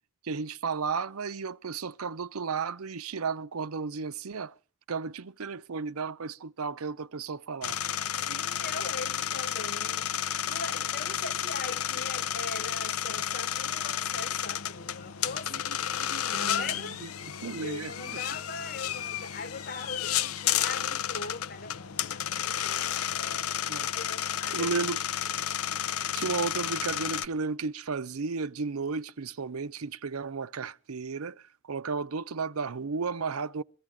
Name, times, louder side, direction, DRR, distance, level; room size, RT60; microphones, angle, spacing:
voice 1, 0.2-4.5 4.9-7.8 15.5-15.6 16.3-17.1 17.4-18.2 23.7-23.9 24.5-25.0 26.1-33.6, right 5 dB, 85° right, 0.7 m, -33 dB
sound 1, 7.6-27.3, left 10 dB, 85° left, 0.6 m, -32 dB
voice 2, 8.3-10.1 10.5-17.0 17.6-24.7, left 3 dB, 45° left, 1.1 m, -41 dB
23.0 x 14.5 x 3.5 m
head